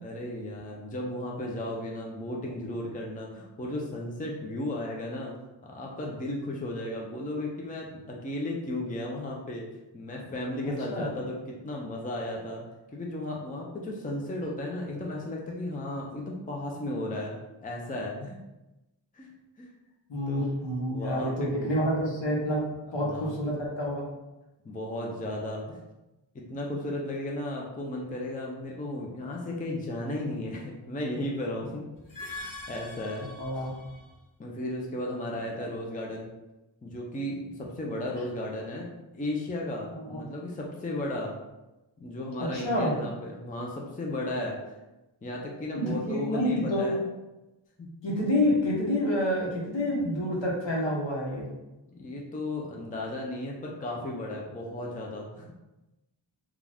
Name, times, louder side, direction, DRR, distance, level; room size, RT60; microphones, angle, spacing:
voice 1, 0.0-5.3 5.6-9.7 9.9-12.6 12.9-17.4 17.6-18.4 19.1-19.3 19.6-19.7 20.3-20.5 20.9-21.7 23.0-23.3 24.6-25.8 26.3-31.8 32.2-33.3 33.6-33.7 34.4-36.3 36.8-41.3 42.0-44.6 45.2-47.0 47.8-47.9 51.9-55.5, left 1 dB, 20° left, -1 dB, 0.5 m, -35 dB
voice 2, 10.6-11.1 20.1-22.6 22.9-24.0 33.3-33.7 40.1-40.2 42.4-42.9 45.7-46.9 48.0-51.5, equal, 65° left, -4 dB, 1.0 m, -28 dB
sound 1, 31.9-34.2, left 2 dB, 45° left, 0.8 m, -43 dB
2.4 x 2.3 x 3.3 m, 1.0 s
wide cardioid pair, 55°, 47 cm